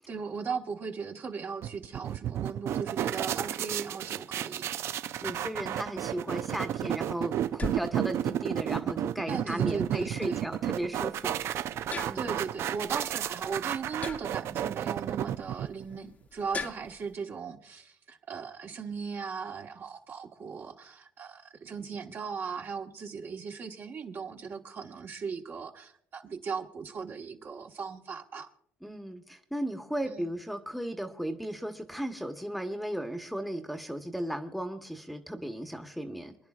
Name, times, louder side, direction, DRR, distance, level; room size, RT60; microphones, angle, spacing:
voice 1, 0.1-4.7 9.3-10.5 12.1-28.5 30.1-30.3, right 5 dB, 50° right, 1.4 m, -38 dB
sound 1, 1.6-16.0, right 11 dB, 65° right, 0.4 m, -32 dB
voice 2, 5.2-11.7 12.0-12.3 28.8-36.4, right 1 dB, ahead, 1.1 m, -35 dB
sound 2, 6.4-17.1, left 4 dB, 35° left, 0.9 m, -44 dB
26.0 x 10.5 x 2.4 m
cardioid pair, 85°, 5 cm